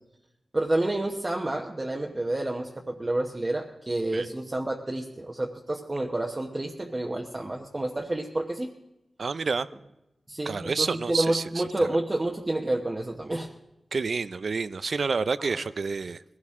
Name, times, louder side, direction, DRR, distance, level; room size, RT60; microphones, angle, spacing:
voice 1, 0.5-8.7 10.3-13.5, right 1 dB, 25° right, 0 dB, 1.1 m, -29 dB
voice 2, 9.2-9.7 10.5-11.9 13.9-16.2, right 4 dB, 65° right, 15 dB, 0.5 m, -29 dB
21.0 x 16.0 x 3.7 m, 0.90 s
wide cardioid pair, 105°, 0 cm